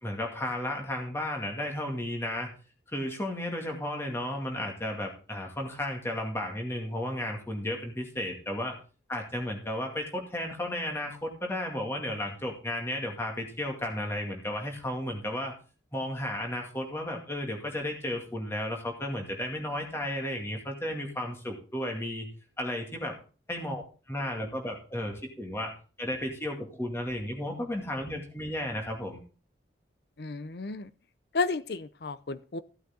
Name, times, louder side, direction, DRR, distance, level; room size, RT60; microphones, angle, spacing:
voice 1, 0.0-2.5 2.9-8.8 9.1-15.5 15.9-22.3 22.6-23.1 23.5-23.8 24.1-29.2, left 1 dB, 15° left, 1 dB, 2.3 m, -33 dB
voice 2, 30.2-30.8 31.3-32.6, left 3 dB, 60° left, 15 dB, 0.6 m, -32 dB
15.5 x 8.3 x 3.8 m, 0.37 s
head